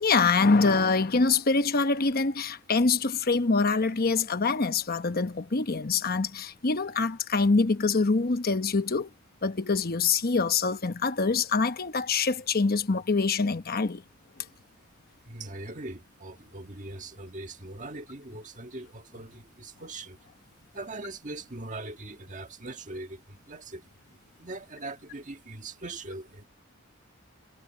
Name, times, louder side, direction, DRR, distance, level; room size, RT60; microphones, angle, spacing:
voice 1, 0.0-9.1 9.4-14.0, left 4 dB, 45° left, 1.0 m, -25 dB
voice 2, 15.3-20.2 20.7-23.9 24.4-26.4, right 2 dB, 35° right, 1.6 m, -41 dB
head